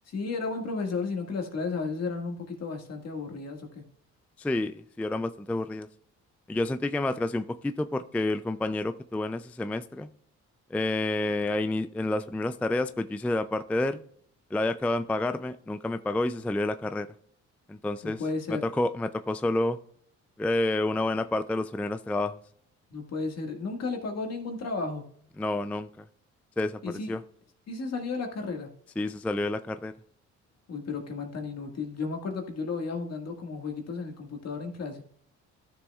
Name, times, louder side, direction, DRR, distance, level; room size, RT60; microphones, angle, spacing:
voice 1, 0.1-3.8 18.0-18.6 22.9-25.1 26.8-27.1 27.7-28.7 30.7-35.0, left 4 dB, 55° left, 3 dB, 1.8 m, -33 dB
voice 2, 4.4-5.9 6.5-10.1 10.7-14.0 14.5-17.1 17.7-18.2 18.5-19.8 20.4-22.4 25.4-26.0 26.6-27.2 29.0-29.9, left 2 dB, 5° left, 11 dB, 0.3 m, -29 dB
12.5 x 6.9 x 2.3 m, 0.63 s
cardioid pair, 90°, 30 cm